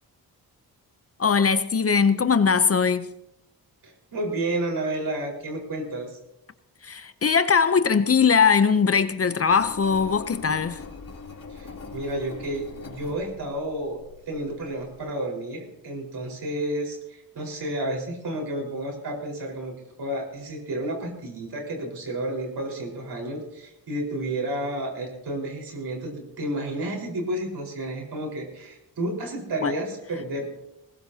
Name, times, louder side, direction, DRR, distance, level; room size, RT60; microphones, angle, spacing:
voice 1, 1.2-3.1 6.8-10.8 29.6-29.7, left 6 dB, 40° left, 0.7 m, -20 dB
voice 2, 3.8-6.2 11.5-14.0 14.3-30.6, right 1 dB, 90° right, 4.8 m, -31 dB
Engine, 9.5-15.0, left 4 dB, 60° left, 3.3 m, -42 dB
20.0 x 20.0 x 2.8 m
wide cardioid pair, 125°, 38 cm